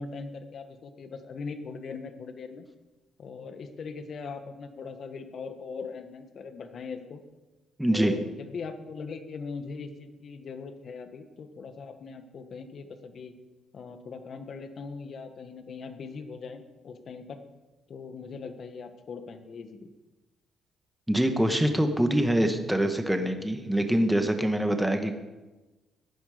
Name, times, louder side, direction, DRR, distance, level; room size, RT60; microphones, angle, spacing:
voice 1, 0.0-2.6 3.2-7.2 7.9-13.3 13.7-17.4 17.9-19.9, left 5 dB, 55° left, 8 dB, 1.6 m, -40 dB
voice 2, 7.8-8.1 21.1-25.2, right 1 dB, 5° right, 6 dB, 1.6 m, -24 dB
16.0 x 10.5 x 5.2 m, 1.2 s
cardioid pair, 90°, 0 cm